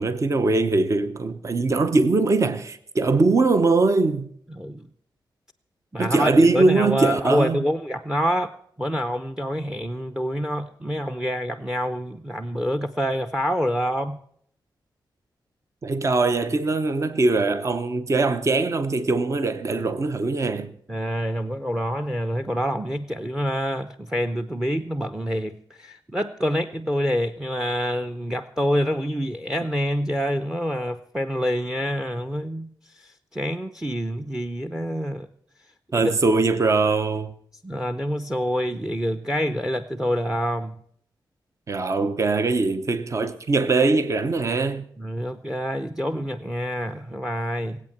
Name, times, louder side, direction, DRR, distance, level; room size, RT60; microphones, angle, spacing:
voice 1, 0.0-4.3 6.0-7.6 15.8-20.7 35.9-37.3 41.7-44.9, right 3 dB, 40° right, 0.9 m, -21 dB
voice 2, 4.5-4.9 5.9-8.5 8.8-14.2 20.9-35.3 35.9-36.1 37.6-40.8 45.0-47.9, equal, 10° right, 0.7 m, -27 dB
19.5 x 8.5 x 7.3 m
wide cardioid pair, 100°, 8 cm